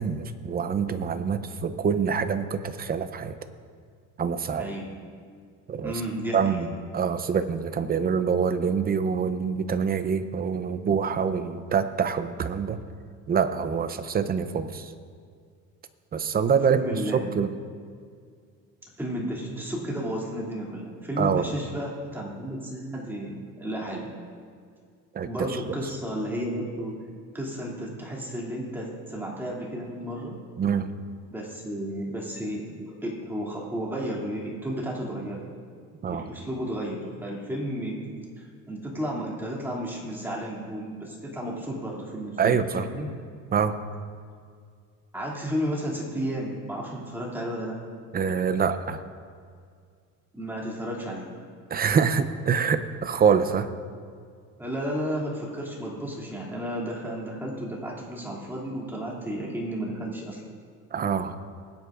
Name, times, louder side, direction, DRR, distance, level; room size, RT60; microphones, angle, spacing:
voice 1, 0.0-3.3 4.2-4.7 5.7-5.9 6.3-12.8 13.3-14.9 16.1-17.5 21.2-21.5 25.1-25.3 30.6-30.9 36.0-36.3 42.4-42.9 43.5-43.8 48.1-49.0 51.7-53.7 60.9-61.4, right 6 dB, 30° right, 10 dB, 0.7 m, -25 dB
voice 2, 4.5-4.9 5.8-6.7 16.7-17.4 19.0-24.1 25.2-26.9 27.3-30.3 31.3-35.4 36.1-43.1 45.1-47.8 50.3-51.3 54.6-60.4, equal, 5° right, -4 dB, 2.8 m, -33 dB
20.5 x 9.7 x 2.6 m, 2.1 s
cardioid pair, 120°, 32 cm